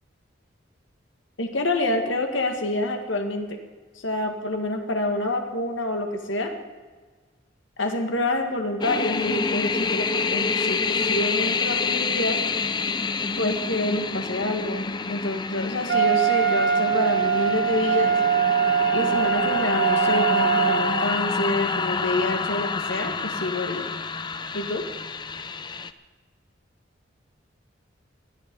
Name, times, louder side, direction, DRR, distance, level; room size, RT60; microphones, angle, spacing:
voice 1, 1.4-3.6 4.0-6.5 7.8-12.4 13.4-18.1 18.9-23.9 24.5-24.8, left 2 dB, 85° left, 4 dB, 1.9 m, -27 dB
sound 1, 8.8-25.9, left 4 dB, 25° left, 0.5 m, -28 dB
Wind instrument woodwind instrument, 15.9-21.2, right 7 dB, 80° right, 2.1 m, -22 dB
19.5 x 13.0 x 5.4 m, 1.4 s
head